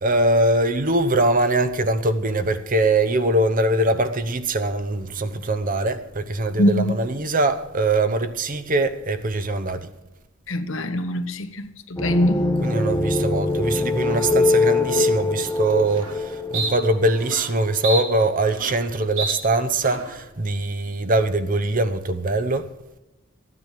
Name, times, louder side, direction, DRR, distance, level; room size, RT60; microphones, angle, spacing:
voice 1, 0.0-9.9 12.6-22.7, right 2 dB, 40° right, 0.9 m, -22 dB
voice 2, 6.6-6.9 10.5-12.4, left 1 dB, 70° left, 1.1 m, -22 dB
sound 1, 12.0-17.8, left 3 dB, 15° left, 0.8 m, -23 dB
sound 2, 15.4-15.5 15.9-16.2 16.5-16.7 17.2-17.5 17.8-18.9 19.2-19.3 19.8-20.2, right 4 dB, 80° right, 3.3 m, -29 dB
14.0 x 9.8 x 6.8 m
head